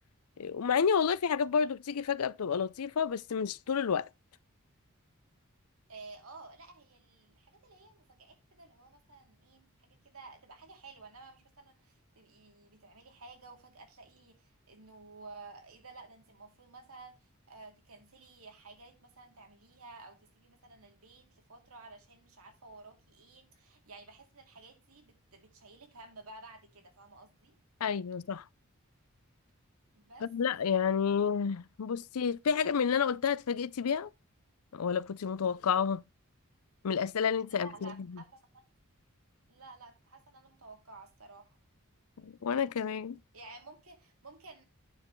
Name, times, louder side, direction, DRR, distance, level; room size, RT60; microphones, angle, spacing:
voice 1, 0.4-4.1 27.8-28.4 30.2-34.1 34.7-36.0 36.8-38.2 42.2-43.2, left 6 dB, 85° left, 0.5 m, -30 dB
voice 2, 5.9-27.6 29.9-30.3 37.5-38.6 39.5-41.6 43.3-44.6, right 3 dB, 75° right, 2.4 m, -53 dB
9.2 x 6.7 x 3.1 m
head